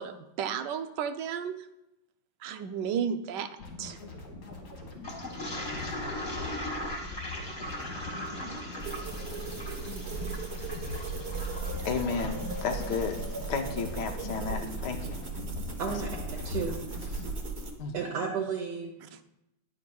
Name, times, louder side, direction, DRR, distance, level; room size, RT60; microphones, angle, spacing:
voice 1, 0.0-1.6 2.4-4.0 19.1-19.2, right 7 dB, 70° right, 1.1 m, -33 dB
sound 1, 3.6-17.3, left 3 dB, 50° left, 1.8 m, -41 dB
Toilet flush, 5.0-13.6, left 1 dB, 25° left, 1.7 m, -40 dB
sound 2, 8.8-17.7, right 3 dB, 40° right, 1.1 m, -37 dB
voice 2, 11.8-13.2 13.5-15.2 15.9-16.0 17.8-17.9, left 5 dB, 65° left, 1.4 m, -33 dB
voice 3, 15.8-16.8 17.1-17.2 17.9-18.9, right 5 dB, 55° right, 1.3 m, -33 dB
10.5 x 9.4 x 2.3 m
omnidirectional pair, 2.1 m